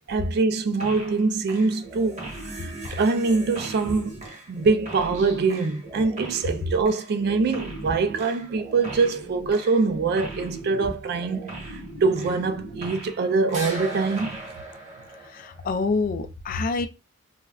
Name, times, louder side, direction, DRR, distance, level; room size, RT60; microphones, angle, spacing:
voice 1, 0.1-2.3 2.6-4.1 4.5-11.6 12.0-14.4, right 4 dB, 50° right, 0.3 m, -24 dB
sound 1, 0.8-1.2 1.5-13.2 13.5-15.7, right 2 dB, 35° right, 0.9 m, -38 dB
voice 2, 15.3-16.9, left 4 dB, 45° left, 0.3 m, -26 dB
2.3 x 2.1 x 3.4 m
head